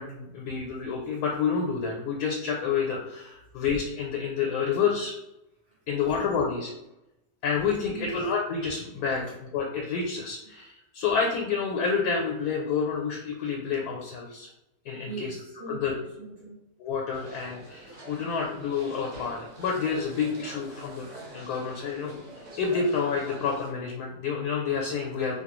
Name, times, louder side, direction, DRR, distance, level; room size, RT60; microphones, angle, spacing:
voice 1, 0.0-5.1 5.9-6.7 7.4-9.2 9.5-14.5 14.8-15.3 15.7-15.9 16.8-22.2 22.6-25.4, left 5 dB, 80° left, -1 dB, 1.1 m, -29 dB
voice 2, 7.9-8.3 9.3-9.4 15.0-16.6 20.7-20.8, right 2 dB, 45° right, -8 dB, 0.9 m, -41 dB
sound 1, 17.1-23.7, right 1 dB, 60° right, 0.4 m, -45 dB
3.0 x 2.3 x 3.0 m, 0.89 s
omnidirectional pair, 1.6 m